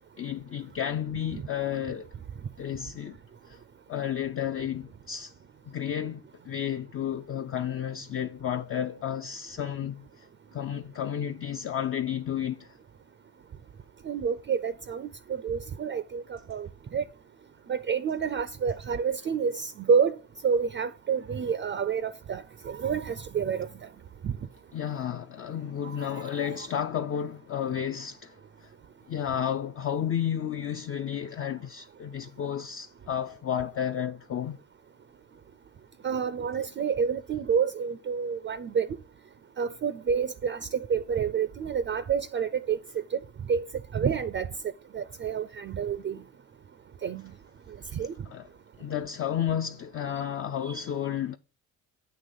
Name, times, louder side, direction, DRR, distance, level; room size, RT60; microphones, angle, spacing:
voice 1, 0.2-2.1 2.6-3.2 3.5-3.6 3.9-5.3 5.7-12.8 24.7-28.7 29.1-34.6 47.9-48.0 48.3-48.5 48.8-51.4, left 9 dB, 35° left, 0.4 m, -32 dB
voice 2, 14.0-17.0 17.7-20.2 20.4-23.7 24.2-24.3 26.0-26.3 36.0-38.9 39.6-42.8 43.1-43.2 43.5-43.6 43.9-44.5 44.9-46.2 47.0-47.2 47.9-48.1 50.7-50.8, right 6 dB, 30° right, 0.4 m, -28 dB
8.3 x 2.9 x 5.4 m
supercardioid pair, 65°, 37 cm